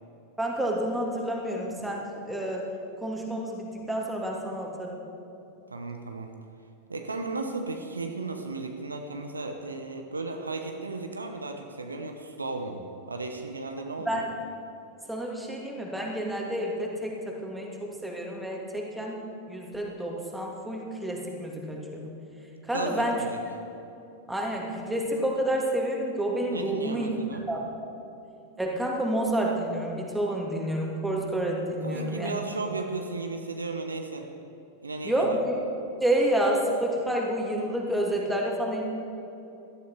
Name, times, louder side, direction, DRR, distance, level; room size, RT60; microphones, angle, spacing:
voice 1, 0.4-2.6 3.0-5.0 14.0-14.2 15.1-17.7 18.0-19.2 19.5-22.1 22.6-23.1 24.3-27.1 27.5-27.6 28.6-32.4 35.0-35.6 36.0-38.8, right 1 dB, 5° right, -1 dB, 2.6 m, -29 dB
voice 2, 5.7-6.3 6.9-12.8 13.1-14.2 22.7-23.4 26.5-27.5 31.8-34.3 34.8-35.4, right 3 dB, 80° right, 4 dB, 1.1 m, -35 dB
17.0 x 12.5 x 4.7 m, 2.9 s
figure-of-eight pair, 90°, 0 cm